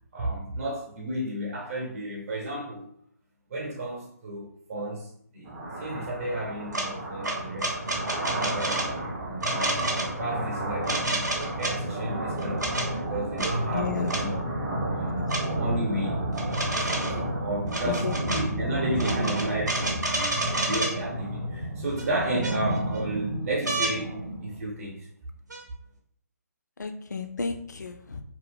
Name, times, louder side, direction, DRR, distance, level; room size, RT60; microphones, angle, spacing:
voice 1, 0.1-2.9 3.5-8.0 8.3-8.9 9.1-14.4 14.9-15.2 15.5-24.1 24.4-25.1, right 1 dB, 50° right, -3 dB, 0.7 m, -33 dB
sound 1, 5.5-24.6, right 1 dB, 15° right, 0.3 m, -31 dB
sound 2, 6.7-6.9 7.2-8.9 9.4-10.1 10.8-11.7 12.4-12.9 13.4-13.5 14.1-14.2 15.3-15.4 16.3-17.2 17.7-18.4 19.0-20.9 22.0-22.1 22.4-23.0 23.7-23.9 25.5-25.6, right 2 dB, 85° right, 0.7 m, -29 dB
voice 2, 13.7-14.2 15.1-15.3 17.8-18.5 26.8-28.2, left 5 dB, 85° left, 6 dB, 0.4 m, -33 dB
2.4 x 2.0 x 3.3 m, 0.66 s
figure-of-eight pair, 145°, 9 cm